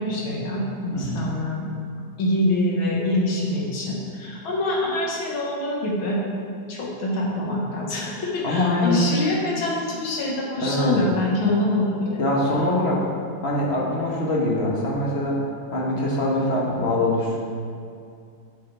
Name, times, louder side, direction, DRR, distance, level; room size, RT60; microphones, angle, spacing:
voice 1, 0.0-1.7 2.2-6.2 6.7-12.2, left 1 dB, 85° left, -3 dB, 2.3 m, -25 dB
voice 2, 8.4-9.0 10.6-11.0 12.2-13.0 13.4-15.4 15.7-17.4, left 1 dB, 35° left, -3 dB, 1.5 m, -23 dB
9.9 x 6.9 x 3.5 m, 2.4 s
omnidirectional pair, 2.1 m